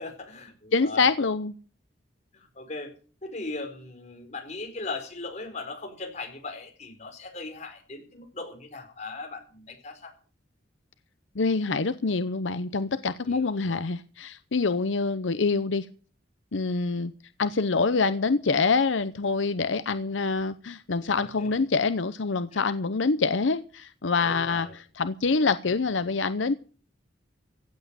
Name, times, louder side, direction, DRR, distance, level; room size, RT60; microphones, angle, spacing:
voice 1, 0.0-1.1 2.3-2.9 3.2-10.1 13.2-13.8 21.4-21.5 22.5-22.7 24.2-24.7, left 3 dB, 40° left, 3 dB, 4.6 m, -39 dB
voice 2, 0.7-1.5 11.4-15.9 16.5-17.1 17.4-24.7 25.0-26.5, left 4 dB, 85° left, 12 dB, 0.7 m, -25 dB
16.0 x 8.2 x 7.5 m, 0.40 s
head